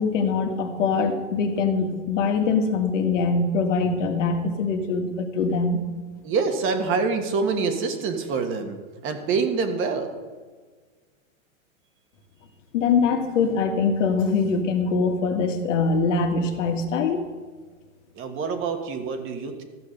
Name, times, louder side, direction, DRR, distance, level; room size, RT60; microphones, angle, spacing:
voice 1, 0.0-5.8 12.7-17.2, left 4 dB, 65° left, 4 dB, 1.9 m, -23 dB
voice 2, 6.2-8.8 9.0-10.1 18.1-19.6, right 4 dB, 30° right, 6 dB, 1.4 m, -26 dB
14.0 x 7.0 x 6.4 m, 1.4 s
hypercardioid pair, 135°, 41 cm